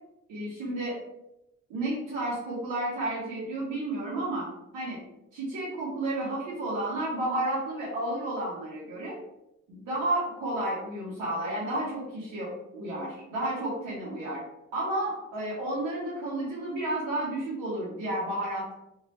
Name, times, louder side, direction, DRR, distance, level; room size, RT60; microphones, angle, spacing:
voice 1, 0.3-1.0 1.7-4.5 4.7-5.0 5.3-9.2 9.7-14.4 14.7-18.7, right 1 dB, 85° right, -7 dB, 1.3 m, -31 dB
3.1 x 2.8 x 3.0 m, 0.88 s
cardioid pair, 90°, 30 cm